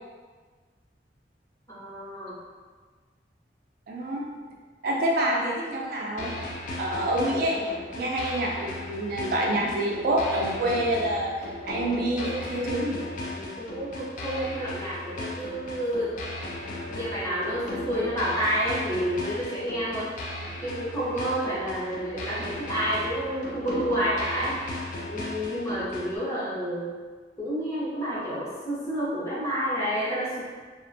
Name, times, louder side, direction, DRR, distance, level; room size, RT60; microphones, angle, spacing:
voice 1, 1.7-2.4 13.2-16.1 16.9-20.1 20.6-24.6 25.1-26.9 27.4-30.4, equal, 15° left, -9 dB, 0.7 m, -29 dB
voice 2, 3.9-4.3 4.8-6.4 6.8-7.7 8.0-11.3 11.7-13.0, right 1 dB, 55° right, -2 dB, 0.3 m, -27 dB
sound 1, 6.2-26.2, left 1 dB, 45° left, 0.3 m, -36 dB
2.4 x 2.1 x 2.6 m, 1.4 s
head